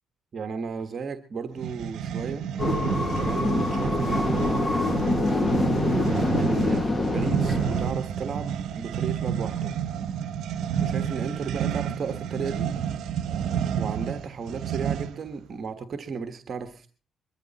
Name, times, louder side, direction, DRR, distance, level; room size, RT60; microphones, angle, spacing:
voice 1, 0.3-2.5 3.0-5.0 5.4-5.5 6.4-9.7 10.8-12.7 13.8-16.9, right 5 dB, 50° right, 8 dB, 1.4 m, -34 dB
sound 1, 1.6-15.3, right 8 dB, 75° right, 1.2 m, -29 dB
sound 2, 2.6-7.9, left 2 dB, 25° left, 1.7 m, -25 dB
22.5 x 13.0 x 4.2 m, 0.39 s
cardioid pair, 90°, 0 cm